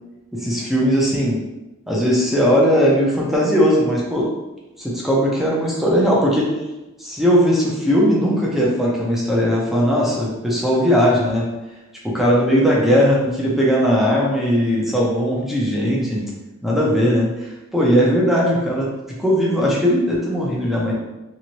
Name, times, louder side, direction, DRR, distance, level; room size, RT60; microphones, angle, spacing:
voice 1, 0.3-1.4 1.9-4.3 4.8-6.5 7.0-11.5 12.0-16.3 16.6-20.9, equal, ahead, -5 dB, 0.6 m, -18 dB
3.2 x 3.0 x 2.9 m, 1.0 s
head